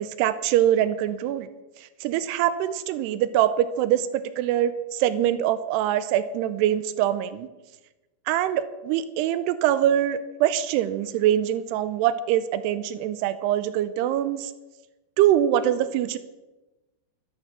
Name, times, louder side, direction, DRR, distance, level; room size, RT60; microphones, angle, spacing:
voice 1, 0.0-1.5 2.0-7.5 8.3-14.5 15.2-16.2, right 11 dB, 90° right, 13 dB, 2.4 m, -23 dB
13.5 x 12.0 x 7.3 m, 1.1 s
omnidirectional pair, 5.5 m